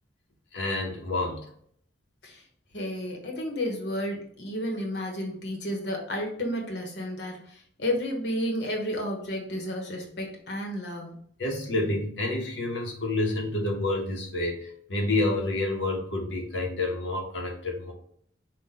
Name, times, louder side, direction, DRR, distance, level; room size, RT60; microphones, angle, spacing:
voice 1, 0.5-1.5 11.4-17.9, left 2 dB, 90° left, -1 dB, 1.1 m, -29 dB
voice 2, 2.7-11.2, left 1 dB, 65° left, 1 dB, 1.1 m, -32 dB
5.8 x 2.5 x 3.6 m, 0.63 s
head